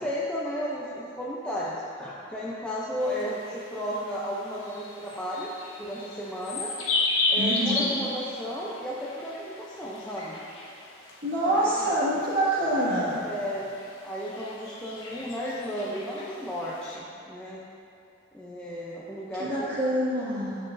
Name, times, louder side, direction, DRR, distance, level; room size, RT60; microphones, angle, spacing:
voice 1, 0.0-5.5 5.8-6.7 7.3-10.4 10.8-11.0 11.4-11.7 13.1-13.7 14.0-17.6 18.3-19.7, equal, 5° left, -7 dB, 0.5 m, -34 dB
sound 1, 3.0-17.0, left 2 dB, 85° left, 1.3 m, -34 dB
voice 2, 7.4-7.9 11.2-13.2 19.4-20.6, right 1 dB, 55° right, -11 dB, 1.7 m, -26 dB
9.1 x 6.9 x 2.6 m, 2.6 s
head